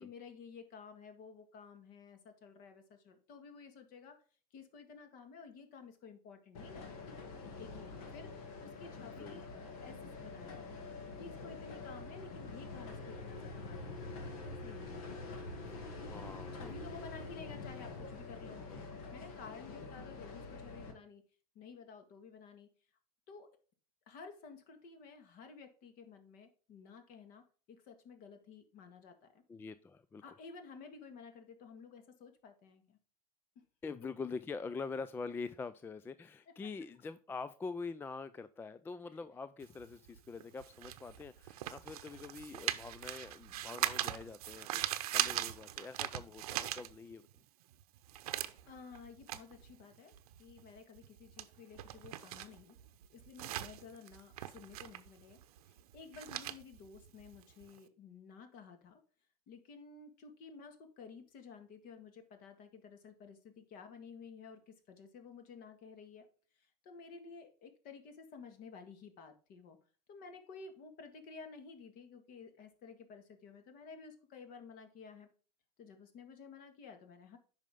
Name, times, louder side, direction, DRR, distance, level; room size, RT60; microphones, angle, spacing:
voice 1, 0.0-4.2 4.5-10.8 11.2-15.4 16.2-18.6 19.1-21.2 21.6-22.7 23.3-23.5 24.1-29.4 30.2-33.0 33.6-33.7 36.5-36.6 39.1-39.2 48.7-52.8 53.1-59.0 59.5-66.3 66.5-69.8 70.1-75.3 75.8-77.4, left 5 dB, 45° left, 1.8 m, -53 dB
sound 1, 6.5-20.9, left 3 dB, 60° left, 2.0 m, -46 dB
voice 2, 9.2-9.6 15.6-17.0 18.7-18.8 29.5-30.2 33.8-47.3, left 4 dB, 10° left, 0.3 m, -45 dB
sound 2, 39.6-47.4 47.7-57.8, right 13 dB, 65° right, 0.8 m, -40 dB
8.9 x 5.5 x 3.6 m
hypercardioid pair, 95°, 20 cm